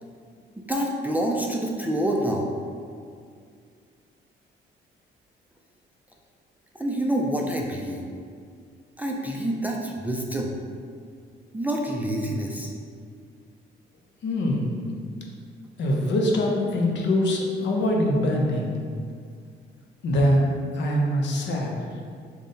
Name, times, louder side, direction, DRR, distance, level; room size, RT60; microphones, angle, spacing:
voice 1, 0.7-2.5 6.8-8.1 9.0-10.6 11.5-12.7, right 1 dB, 10° right, -1 dB, 0.3 m, -27 dB
voice 2, 14.2-14.8 15.8-18.7 20.0-21.7, left 1 dB, 65° left, -1 dB, 0.6 m, -23 dB
3.7 x 2.1 x 3.8 m, 2.2 s
cardioid pair, 90°, 20 cm